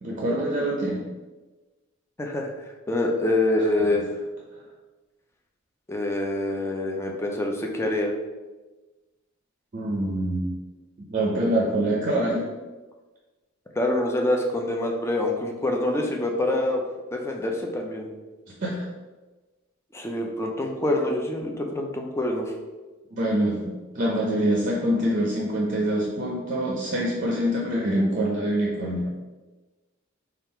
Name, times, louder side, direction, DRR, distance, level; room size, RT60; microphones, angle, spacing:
voice 1, 0.0-1.0 9.7-10.5 11.1-12.5 18.6-18.8 23.1-23.6 23.9-29.1, right 1 dB, 40° right, -3 dB, 0.6 m, -25 dB
voice 2, 2.2-2.5 2.9-4.1 5.9-8.1 13.8-16.8 17.1-18.1 19.9-22.5, left 1 dB, 15° left, 1 dB, 0.5 m, -25 dB
3.6 x 2.4 x 4.3 m, 1.2 s
head